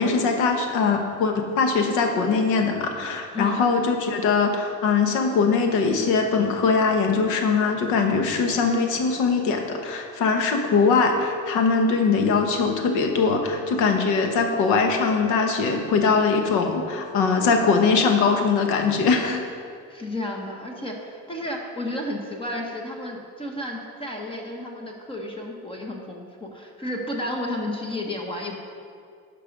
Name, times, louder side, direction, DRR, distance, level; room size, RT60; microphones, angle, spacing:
voice 1, 0.0-19.4, left 4 dB, 85° left, 4 dB, 1.2 m, -21 dB
voice 2, 19.9-28.6, left 1 dB, 20° left, 1 dB, 0.9 m, -32 dB
11.5 x 5.3 x 5.2 m, 2.4 s
cardioid pair, 145°, 29 cm